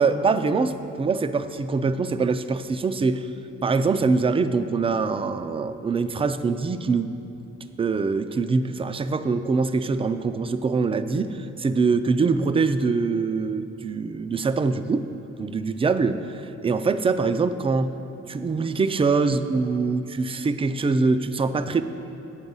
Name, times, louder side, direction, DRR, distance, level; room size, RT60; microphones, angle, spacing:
voice 1, 0.0-3.3 3.6-7.1 7.8-15.1 15.4-17.9 18.3-21.8, right 4 dB, 20° right, 11 dB, 0.3 m, -23 dB
8.2 x 7.0 x 5.4 m, 2.9 s
cardioid pair, 90°, 30 cm